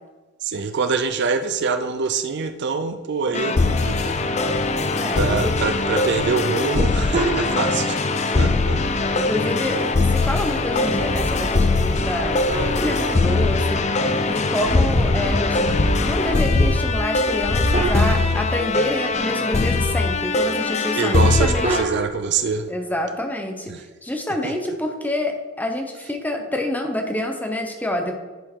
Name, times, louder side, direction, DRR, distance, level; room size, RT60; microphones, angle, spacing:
voice 1, 0.4-4.2 5.1-8.0 8.4-8.8 20.9-22.7 23.7-23.8 24.4-24.5, right 5 dB, 55° right, 9 dB, 0.5 m, -24 dB
sound 1, 3.3-21.8, left 3 dB, 35° left, 0.5 m, -21 dB
sound 2, 4.6-4.9 5.5-5.6 6.0-6.2 6.7-7.2 8.6-8.7 9.5-10.2 10.7-13.5 14.2-17.0 17.3-18.3 19.1-19.2, left 1 dB, 70° left, 1.1 m, -26 dB
voice 2, 4.8-5.5 8.3-8.5 9.1-12.4 12.8-14.0 14.3-21.8 22.7-23.7 24.0-28.2, left 1 dB, 10° left, 4 dB, 0.8 m, -27 dB
sound 3, 7.1-8.2 12.5-14.0 17.7-18.9 21.6-22.1, right 2 dB, 35° right, 1.2 m, -28 dB
10.5 x 4.5 x 4.6 m, 1.3 s
head